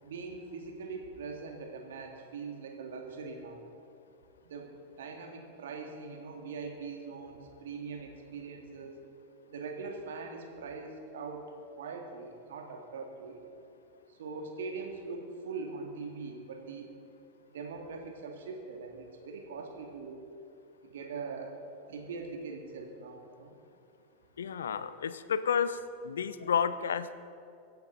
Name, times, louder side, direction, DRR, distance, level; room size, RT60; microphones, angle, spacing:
voice 1, 0.0-3.6 4.4-9.0 9.5-11.5 11.8-13.5 14.1-16.9 17.5-20.2 20.8-23.5, right 4 dB, 65° right, 2 dB, 2.2 m, -42 dB
voice 2, 24.4-27.1, left 7 dB, 70° left, 14 dB, 0.6 m, -31 dB
24.0 x 10.5 x 4.0 m, 2.6 s
figure-of-eight pair, 90°, 0 cm